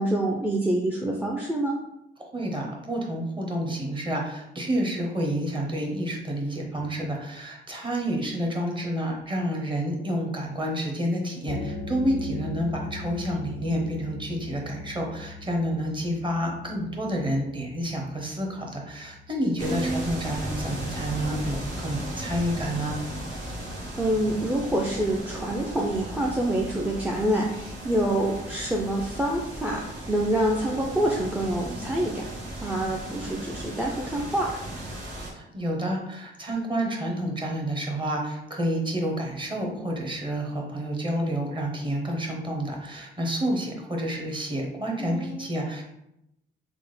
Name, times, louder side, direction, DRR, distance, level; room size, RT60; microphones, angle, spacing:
voice 1, 0.0-1.8 19.6-20.2 23.4-23.5 24.0-32.2 32.6-34.6 45.0-45.5, right 1 dB, 10° right, -1 dB, 0.4 m, -27 dB
voice 2, 2.2-23.0 35.3-45.8, equal, 25° right, 0 dB, 0.9 m, -29 dB
sound 1, 11.5-22.8, left 3 dB, 60° left, 0.4 m, -40 dB
sound 2, 19.6-35.3, right 1 dB, 70° right, 1.2 m, -36 dB
3.5 x 2.1 x 3.2 m, 0.84 s
cardioid pair, 90°, 20 cm